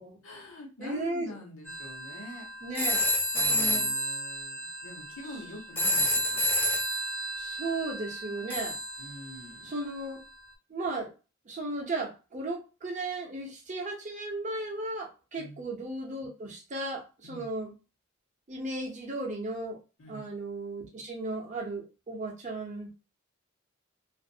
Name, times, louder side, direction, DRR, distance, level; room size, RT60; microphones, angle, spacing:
voice 1, 0.2-2.4 3.3-6.5 9.0-9.7 15.4-15.6 17.2-17.5 20.0-20.3, left 1 dB, 75° left, 0 dB, 0.9 m, -45 dB
voice 2, 0.8-1.3 2.6-3.0 3.3-3.9 7.4-8.8 9.6-10.2 10.7-11.1 11.5-17.7 18.5-19.8 20.1-22.9, right 2 dB, 35° right, 1 dB, 0.6 m, -35 dB
sound 1, 1.7-9.7, equal, 10° left, 0.6 m, -30 dB
2.4 x 2.0 x 2.6 m, 0.32 s
head